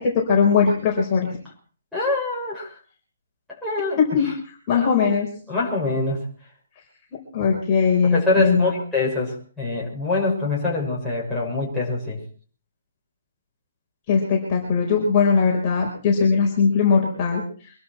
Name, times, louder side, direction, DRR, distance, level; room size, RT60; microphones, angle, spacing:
voice 1, 0.0-1.4 4.0-4.3 4.7-5.3 7.3-8.7 14.1-17.7, left 5 dB, 20° left, -2 dB, 4.8 m, -20 dB
voice 2, 1.9-2.7 3.6-4.3 4.7-4.9 5.5-6.2 8.1-12.2, left 2 dB, ahead, -8 dB, 6.2 m, -25 dB
25.0 x 12.5 x 4.5 m, 0.42 s
hypercardioid pair, 170°, 0 cm